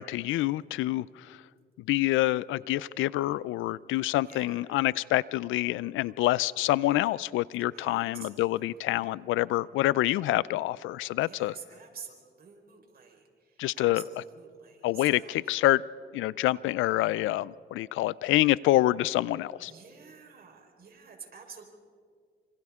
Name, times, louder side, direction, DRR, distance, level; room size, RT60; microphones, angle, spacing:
voice 1, 0.0-1.4 1.9-11.6 13.6-14.0 14.8-15.8 16.1-19.7, left 16 dB, 90° left, 21 dB, 0.4 m, -27 dB
voice 2, 4.1-4.6 7.7-8.9 11.2-15.6 19.7-21.6, right 6 dB, 50° right, 2 dB, 4.3 m, -49 dB
27.5 x 26.0 x 3.6 m, 2.1 s
cardioid pair, 90°, 20 cm